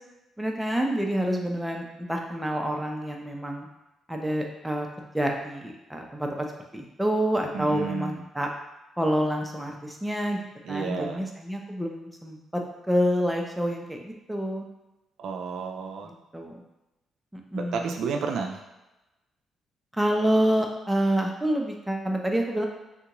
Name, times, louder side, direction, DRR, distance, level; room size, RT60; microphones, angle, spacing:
voice 1, 0.4-3.7 4.1-6.5 6.7-8.5 9.0-10.4 10.7-12.6 12.9-14.7 16.0-16.6 17.3-17.9 19.9-22.6, equal, 5° right, 1 dB, 0.5 m, -27 dB
voice 2, 7.5-8.2 10.6-11.2 15.2-16.1 17.5-18.6, right 5 dB, 70° right, 3 dB, 0.3 m, -31 dB
3.6 x 2.4 x 2.9 m, 1.0 s
cardioid pair, 90°, 0 cm